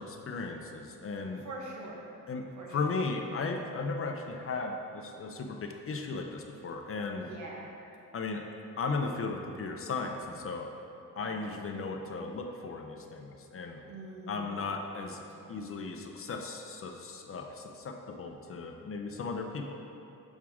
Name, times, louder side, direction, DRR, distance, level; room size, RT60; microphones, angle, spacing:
voice 1, 0.0-1.4 2.3-7.3 8.1-8.5 8.8-10.7 11.2-13.8 14.3-15.2 15.5-19.8, left 4 dB, 40° left, 3 dB, 0.6 m, -36 dB
voice 2, 1.4-2.1 2.6-2.8 7.2-7.7 11.2-11.6 13.9-14.6 15.0-15.5, right 2 dB, 55° right, -2 dB, 1.3 m, -44 dB
7.3 x 6.2 x 3.6 m, 2.7 s
wide cardioid pair, 140°, 34 cm